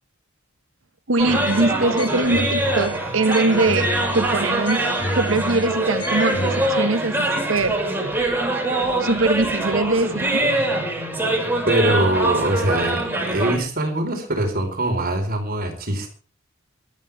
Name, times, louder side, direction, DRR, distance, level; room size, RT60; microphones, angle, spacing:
voice 1, 1.1-4.8 5.1-7.8 9.0-10.5, right 3 dB, 80° right, 1.2 m, -22 dB
sound 1, 1.2-13.6, right 1 dB, 10° right, 6.4 m, -23 dB
sound 2, 1.3-6.7, left 1 dB, 25° left, 6.5 m, -32 dB
voice 2, 11.7-16.1, right 1 dB, 50° right, 4.5 m, -22 dB
23.5 x 13.5 x 3.6 m
head